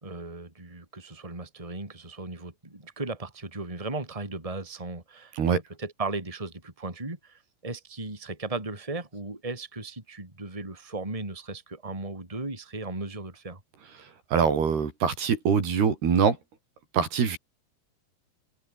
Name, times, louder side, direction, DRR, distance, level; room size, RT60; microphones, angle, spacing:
voice 1, 0.0-13.6, right 3 dB, 10° right, 3.9 m, -36 dB
voice 2, 14.3-16.4 16.9-17.4, right 6 dB, 70° right, 6.0 m, -23 dB
open air
omnidirectional pair, 4.8 m